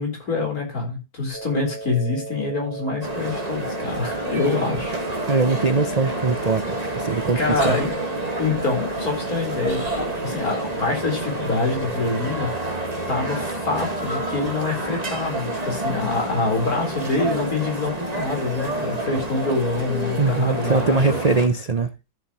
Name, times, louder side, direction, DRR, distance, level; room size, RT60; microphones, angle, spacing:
voice 1, 0.0-5.0 7.4-7.9 8.4-12.8 13.1-21.1, left 3 dB, 60° left, 4.4 m, -26 dB
sound 1, 1.3-13.3, right 2 dB, 5° left, 4.1 m, -35 dB
sound 2, 3.0-21.5, right 1 dB, 25° right, 1.6 m, -29 dB
voice 2, 5.3-7.8 20.2-21.9, right 4 dB, 60° right, 0.4 m, -21 dB
14.0 x 7.3 x 3.0 m
omnidirectional pair, 1.8 m